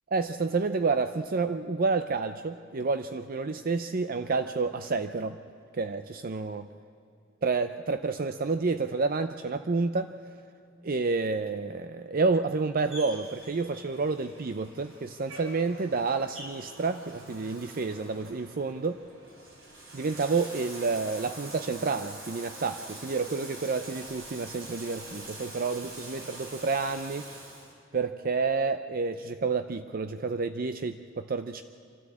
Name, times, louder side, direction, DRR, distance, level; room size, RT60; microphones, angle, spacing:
voice 1, 0.1-5.4 5.7-6.7 7.4-10.1 10.8-19.0 19.9-27.3 27.9-31.6, right 4 dB, 45° right, 9 dB, 0.5 m, -29 dB
Bathtub (filling or washing), 12.9-27.7, right 2 dB, 80° right, 5.9 m, -45 dB
25.5 x 13.5 x 8.5 m, 2.6 s
head